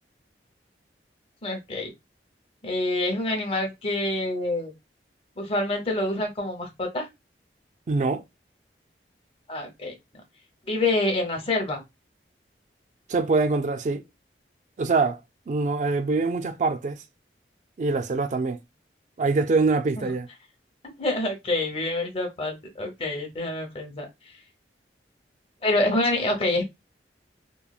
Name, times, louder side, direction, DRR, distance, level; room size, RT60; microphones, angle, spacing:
voice 1, 1.4-1.9 2.6-4.7 5.4-7.1 9.5-9.9 10.7-11.8 20.0-20.1 21.0-24.1 25.6-26.6, left 2 dB, 35° left, 0.7 m, -26 dB
voice 2, 7.9-8.2 13.1-14.0 14.8-15.2 15.5-17.0 17.8-18.6 19.2-20.3, right 3 dB, 45° right, 0.3 m, -24 dB
3.0 x 2.2 x 2.3 m
head